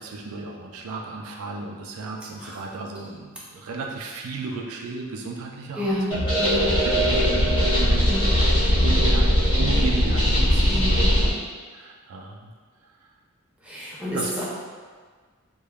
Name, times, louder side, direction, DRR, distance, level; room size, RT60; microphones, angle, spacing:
voice 1, 0.0-6.0 6.8-8.4 8.8-10.9 11.7-12.5 14.1-14.5, right 3 dB, 80° right, 1 dB, 0.4 m, -34 dB
voice 2, 5.8-6.6 8.1-8.2 10.7-11.1 13.6-14.5, equal, 5° right, -7 dB, 0.5 m, -29 dB
sound 1, 6.1-11.3, equal, 25° left, 0.9 m, -20 dB
3.2 x 2.2 x 2.3 m, 1.5 s
head